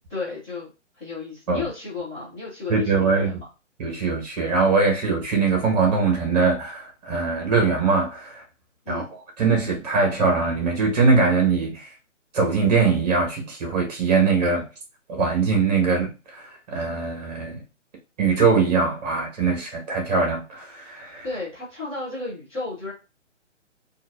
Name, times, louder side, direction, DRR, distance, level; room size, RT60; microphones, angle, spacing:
voice 1, 0.1-0.7 0.9-3.4 8.8-9.1 21.2-22.9, left 3 dB, 10° left, 0.6 m, -33 dB
voice 2, 2.7-3.4 3.8-8.4 8.9-9.0 9.4-11.9 12.3-14.6 15.1-17.6 18.2-21.3, right 4 dB, 35° right, 1.3 m, -22 dB
3.8 x 2.5 x 2.4 m
figure-of-eight pair, 140°, 37 cm